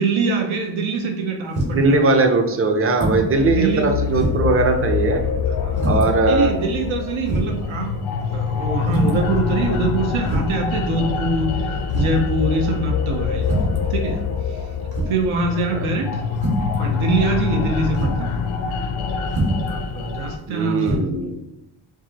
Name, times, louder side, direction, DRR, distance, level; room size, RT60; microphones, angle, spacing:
voice 1, 0.0-2.2 3.4-3.9 5.6-5.9 6.2-8.0 8.3-13.6 13.9-14.7 15.1-16.2 16.8-18.3 19.7-21.0, right 3 dB, 85° right, 2 dB, 0.7 m, -24 dB
sound 1, 1.5-1.9 2.9-3.3 3.7-3.8 4.2-4.6 5.7-6.1 6.8-6.9 7.3-7.6 8.9-9.3 10.2-10.6 11.9-12.3 13.4-13.8 14.9-15.3 16.3-16.7 17.9-18.2 19.3-19.7 20.8-21.0, right 1 dB, 55° right, 1.4 m, -24 dB
voice 2, 1.7-5.2 5.9-6.5 15.7-15.9 20.5-21.4, right 3 dB, 30° right, 5 dB, 0.5 m, -19 dB
sound 2, 3.4-20.4, left 6 dB, 85° left, 0.6 m, -25 dB
4.7 x 2.5 x 2.8 m, 0.86 s
wide cardioid pair, 120°, 47 cm